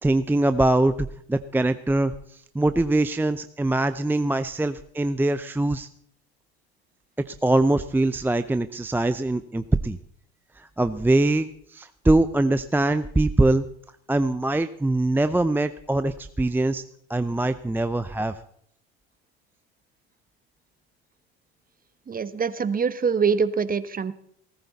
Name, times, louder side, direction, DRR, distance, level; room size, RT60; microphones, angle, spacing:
voice 1, 0.0-5.9 7.4-10.0 10.6-13.6 14.1-16.8 17.1-18.4, right 2 dB, 5° right, 11 dB, 0.6 m, -23 dB
voice 2, 22.1-24.1, right 6 dB, 25° right, 14 dB, 1.2 m, -24 dB
19.0 x 14.5 x 4.1 m, 0.67 s
hypercardioid pair, 75°, 32 cm